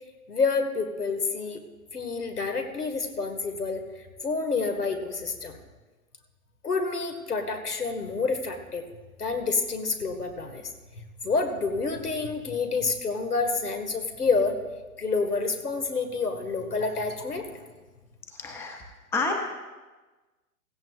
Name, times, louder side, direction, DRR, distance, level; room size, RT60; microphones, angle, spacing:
voice 1, 0.3-1.6 1.9-5.6 6.6-8.8 9.2-14.6 15.0-17.6, left 4 dB, 90° left, 5 dB, 1.9 m, -28 dB
voice 2, 18.3-18.8 19.1-19.3, left 3 dB, 5° left, 3 dB, 0.7 m, -29 dB
16.5 x 15.0 x 2.5 m, 1.2 s
hypercardioid pair, 125°, 45 cm